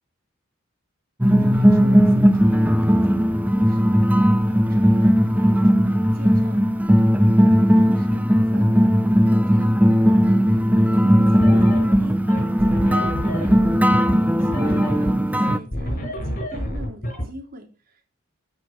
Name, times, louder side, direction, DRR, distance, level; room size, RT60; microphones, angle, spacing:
sound 1, 1.2-15.6, equal, 5° right, 0.7 m, -17 dB
voice 1, 1.3-13.8 14.1-18.1, equal, 40° right, 3 dB, 3.7 m, -43 dB
sound 2, 11.2-17.2, equal, 40° left, 5.6 m, -28 dB
14.0 x 6.6 x 6.1 m, 0.34 s
head